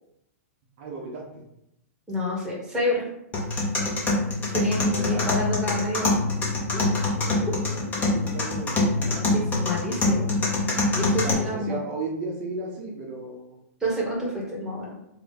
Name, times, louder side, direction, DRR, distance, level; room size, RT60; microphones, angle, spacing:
voice 1, 0.8-1.4 4.9-5.2 7.0-9.5 11.2-13.6, right 3 dB, 45° right, -2 dB, 0.9 m, -35 dB
voice 2, 2.1-3.0 4.5-6.1 6.7-6.8 9.3-10.3 10.9-11.8 13.8-14.9, equal, 5° right, -5 dB, 1.4 m, -28 dB
sound 1, 3.3-11.3, left 2 dB, 20° left, 1.0 m, -25 dB
3.4 x 2.4 x 4.0 m, 0.82 s
hypercardioid pair, 140°, 9 cm